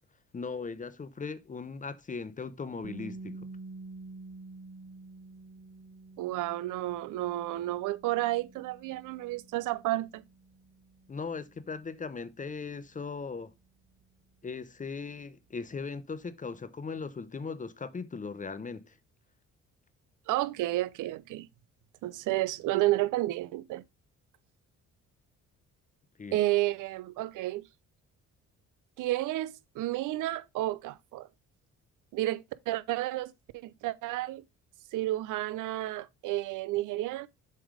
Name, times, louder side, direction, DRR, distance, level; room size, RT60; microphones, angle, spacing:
voice 1, 0.3-3.4 11.1-13.5 14.4-19.0 26.2-26.4, left 4 dB, 25° left, 0.8 m, -38 dB
sound 1, 2.8-14.7, right 3 dB, 30° right, 0.8 m, -49 dB
voice 2, 6.2-10.2 20.3-21.5 22.0-23.8 26.3-27.6 29.0-31.3 32.1-34.4 34.9-37.3, right 16 dB, 85° right, 0.6 m, -31 dB
7.5 x 3.4 x 4.9 m
cardioid pair, 90°, 30 cm